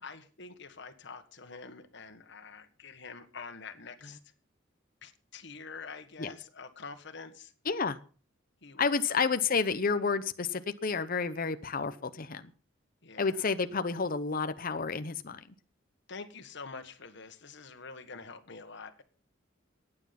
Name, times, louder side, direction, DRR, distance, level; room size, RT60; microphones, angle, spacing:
voice 1, 0.0-4.2 5.0-7.5 8.6-9.3 13.0-13.5 16.1-19.0, left 4 dB, 65° left, 9 dB, 1.7 m, -46 dB
voice 2, 7.7-8.0 8.8-12.5 13.2-15.4, left 5 dB, 45° left, 11 dB, 0.8 m, -30 dB
15.0 x 9.8 x 5.9 m, 0.40 s
head